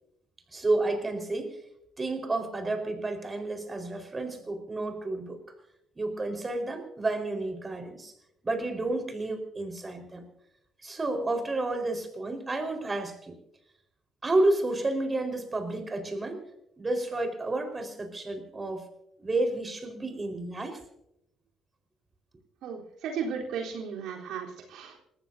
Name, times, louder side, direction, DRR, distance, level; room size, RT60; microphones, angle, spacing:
voice 1, 0.5-1.6 2.0-5.4 5.9-8.1 8.4-10.2 10.8-13.3 14.2-16.4 16.8-18.9 19.2-20.8, right 2 dB, 25° right, 5 dB, 4.6 m, -30 dB
voice 2, 22.6-25.0, right 6 dB, 65° right, -1 dB, 3.7 m, -35 dB
28.5 x 15.0 x 2.7 m, 0.85 s
hypercardioid pair, 50°, 0 cm